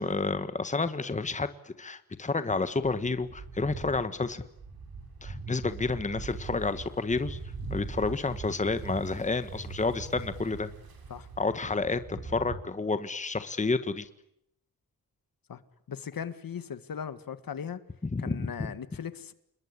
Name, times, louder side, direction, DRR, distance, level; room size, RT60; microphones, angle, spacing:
voice 1, 0.0-4.4 5.2-7.4 7.7-10.7 11.4-14.1 18.1-18.7, left 3 dB, 20° left, 11 dB, 1.4 m, -30 dB
sound 1, 2.8-12.6, right 3 dB, 80° right, 5.9 m, -41 dB
voice 2, 15.9-17.8 18.2-19.3, left 7 dB, 70° left, 13 dB, 1.8 m, -38 dB
28.5 x 21.5 x 9.8 m, 0.76 s
wide cardioid pair, 150°, 36 cm